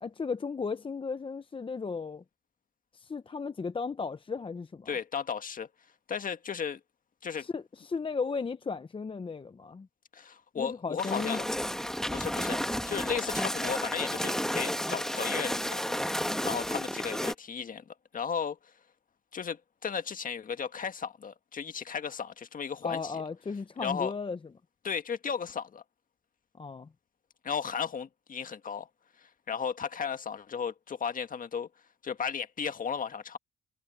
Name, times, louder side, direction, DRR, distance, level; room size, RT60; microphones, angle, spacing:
voice 1, 0.0-2.2 2.9-4.9 7.4-9.9 10.5-11.5 22.8-24.4 26.6-26.9, left 5 dB, 25° left, 0.8 m, -35 dB
voice 2, 4.9-5.7 6.1-6.8 7.2-7.5 10.1-11.4 12.1-15.8 16.1-18.7 19.3-23.2 23.8-24.1 24.8-25.8 27.4-28.9 29.2-31.7 32.0-33.4, left 6 dB, 45° left, 1.6 m, -35 dB
sound 1, 11.0-17.3, equal, ahead, 1.7 m, -32 dB
cardioid pair, 90°, 20 cm